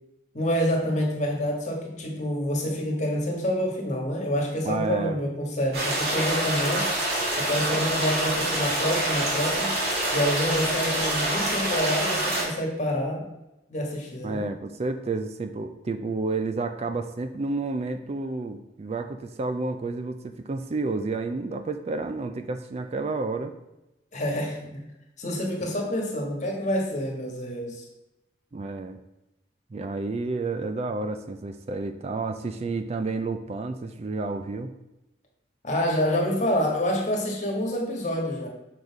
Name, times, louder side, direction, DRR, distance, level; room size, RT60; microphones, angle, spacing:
voice 1, 0.3-7.0 7.4-9.7 10.1-13.3 13.7-14.4 24.1-24.8 25.2-27.8 35.6-38.5, equal, 40° left, 0 dB, 1.4 m, -27 dB
voice 2, 4.6-5.2 14.2-23.5 28.5-29.0 29.7-34.7, right 3 dB, 35° right, 8 dB, 0.4 m, -30 dB
sound 1, 5.7-12.4, right 1 dB, 55° right, 2.2 m, -26 dB
6.5 x 4.0 x 4.6 m, 0.95 s
head